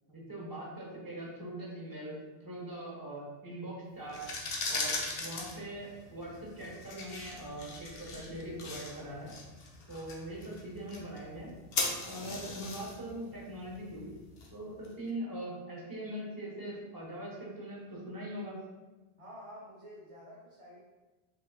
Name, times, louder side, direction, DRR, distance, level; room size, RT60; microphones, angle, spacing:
voice 1, 0.1-4.2 4.7-9.3 9.9-11.5 12.0-14.1 14.5-18.5, right 1 dB, 20° right, -5 dB, 1.1 m, -42 dB
sound 1, 4.0-14.9, left 3 dB, 70° left, 1.0 m, -40 dB
voice 2, 19.2-20.8, equal, 35° right, -5 dB, 0.7 m, -49 dB
5.3 x 3.8 x 2.3 m, 1.2 s
omnidirectional pair, 1.1 m